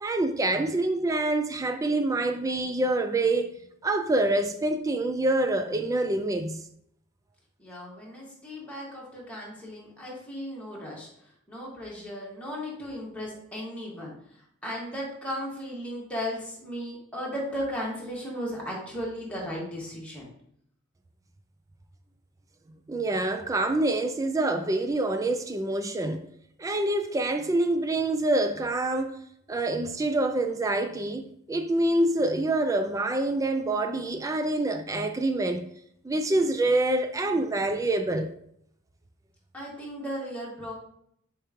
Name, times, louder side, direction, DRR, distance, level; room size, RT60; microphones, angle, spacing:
voice 1, 0.0-3.5 3.8-6.6 22.9-26.3 26.6-29.2 29.5-35.6 36.0-38.3, right 2 dB, 15° right, 0.3 m, -26 dB
voice 2, 7.6-11.1 11.5-14.1 14.6-20.3 39.5-40.7, equal, 5° left, 1.9 m, -36 dB
6.7 x 4.7 x 3.1 m
head